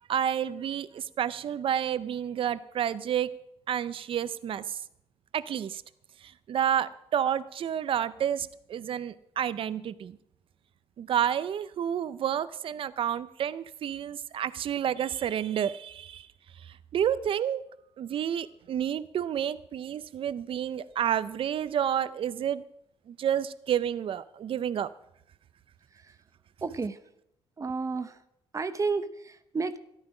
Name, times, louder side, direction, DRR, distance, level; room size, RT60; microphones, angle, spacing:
voice 1, 0.1-3.3 3.7-4.8 5.3-5.8 6.2-10.2 11.0-16.3 16.6-17.6 18.0-22.6 23.1-24.9, right 9 dB, 55° right, 15 dB, 0.6 m, -30 dB
voice 2, 26.6-27.0 27.6-28.2 28.5-29.8, right 4 dB, 30° right, 11 dB, 0.9 m, -31 dB
13.5 x 12.0 x 4.9 m, 0.79 s
cardioid pair, 95°, 11 cm